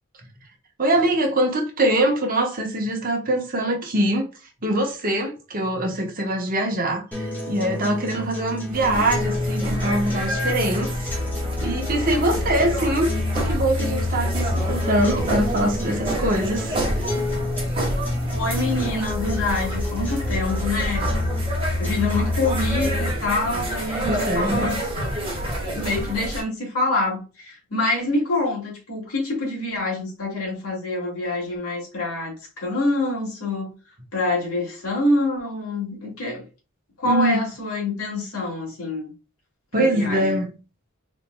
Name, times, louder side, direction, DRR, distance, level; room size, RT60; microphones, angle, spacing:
voice 1, 0.8-4.3 4.6-11.2 11.6-13.1 13.4-16.9 24.0-24.7 37.0-37.4 39.7-40.5, right 1 dB, 40° right, 1.2 m, -23 dB
sound 1, 7.1-23.1, left 2 dB, 10° left, 1.6 m, -28 dB
sound 2, 8.7-26.4, right 1 dB, 25° right, 1.7 m, -29 dB
voice 2, 18.3-21.1 21.8-24.8 25.7-33.7 34.1-36.4 37.0-39.1 39.8-40.4, left 2 dB, 90° left, 2.3 m, -26 dB
4.3 x 3.8 x 2.2 m
head